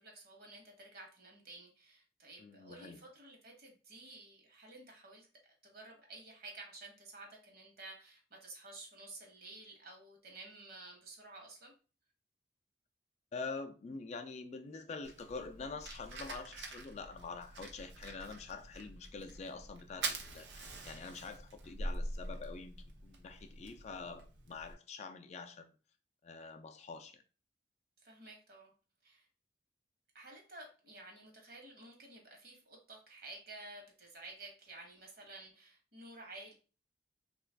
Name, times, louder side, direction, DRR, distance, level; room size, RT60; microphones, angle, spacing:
voice 1, 0.0-5.3 5.6-11.7 28.0-28.7 29.0-29.3 30.1-36.5, right 2 dB, 60° right, 1.0 m, -52 dB
voice 2, 2.4-3.0 13.3-25.7 26.2-27.2, left 4 dB, 40° left, 0.3 m, -46 dB
Fire, 15.0-24.7, right 2 dB, 80° right, 0.6 m, -45 dB
3.1 x 2.4 x 3.2 m
head